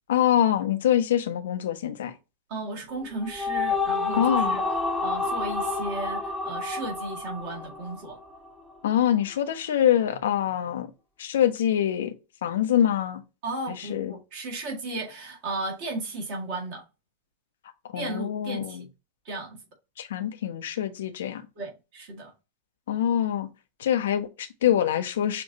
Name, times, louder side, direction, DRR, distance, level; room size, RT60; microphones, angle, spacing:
voice 1, 0.1-2.1 4.1-4.6 8.8-10.9 11.2-12.1 12.4-13.2 13.7-14.1 17.9-18.8 20.0-21.4 22.9-23.5 23.8-25.4, left 10 dB, 60° left, 0.7 m, -25 dB
voice 2, 2.5-4.6 5.0-8.2 13.4-16.8 17.9-18.8 19.3-19.6 21.6-22.3, right 2 dB, 45° right, 1.9 m, -35 dB
sound 1, 3.0-8.5, left 3 dB, ahead, 0.8 m, -29 dB
6.7 x 2.6 x 2.7 m
figure-of-eight pair, 90°, 0 cm